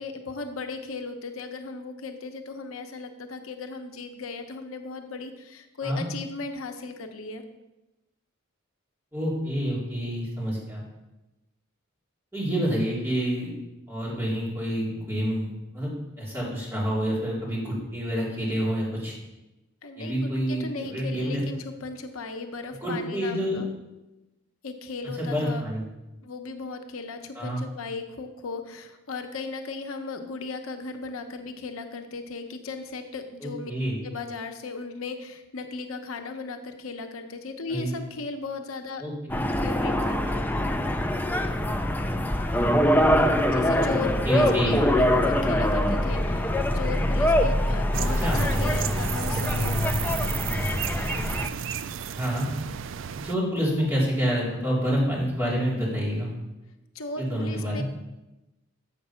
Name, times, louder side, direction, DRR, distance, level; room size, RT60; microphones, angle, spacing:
voice 1, 0.0-7.4 19.8-23.7 24.6-25.7 26.2-33.7 34.0-39.0 39.6-40.4 43.5-49.8 56.9-57.8, left 4 dB, 90° left, 5 dB, 0.8 m, -36 dB
voice 2, 9.1-10.8 12.3-13.5 13.9-19.1 20.0-21.4 22.8-23.6 25.2-25.8 27.4-27.6 33.4-34.0 37.7-37.9 39.0-39.5 44.3-44.7 48.2-48.4 52.1-52.5 53.2-56.3 57.2-57.8, equal, 10° right, -7 dB, 3.5 m, -28 dB
sound 1, 39.3-51.5, left 1 dB, 10° left, 0.5 m, -24 dB
sound 2, 47.9-53.3, right 8 dB, 65° right, 0.4 m, -33 dB
7.7 x 6.8 x 5.6 m, 1.0 s
head